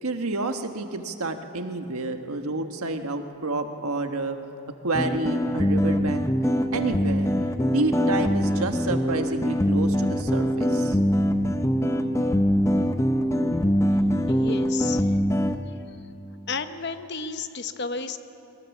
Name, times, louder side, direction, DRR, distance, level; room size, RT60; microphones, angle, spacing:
voice 1, 0.0-4.4 4.8-6.3 6.7-7.3 7.7-11.0, right 2 dB, 80° right, 6 dB, 1.4 m, -29 dB
sound 1, 4.9-15.6, equal, 15° left, 0.7 m, -23 dB
voice 2, 14.3-15.1 16.5-18.2, left 5 dB, 50° left, 9 dB, 0.9 m, -32 dB
22.0 x 20.0 x 7.3 m, 2.7 s
head